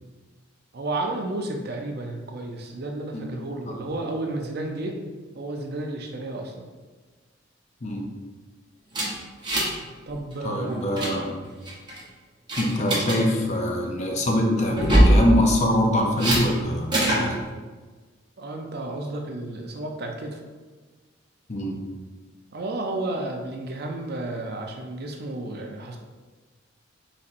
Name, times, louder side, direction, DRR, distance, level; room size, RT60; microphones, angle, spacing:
voice 1, 0.7-4.9 5.3-6.6 10.1-11.0 12.8-12.9 18.4-20.4 22.5-26.0, right 2 dB, 50° right, 2 dB, 0.5 m, -32 dB
voice 2, 7.8-8.1 10.4-11.5 12.6-17.4 21.5-21.8, left 1 dB, 35° left, 1 dB, 0.5 m, -24 dB
sound 1, 8.9-9.8 10.1-10.3 10.7-11.1 11.7-12.0 12.5-13.2 14.7-15.2 16.2-16.4 16.9-17.2, right 1 dB, 20° right, 0.8 m, -20 dB
4.1 x 4.1 x 2.5 m, 1.3 s
head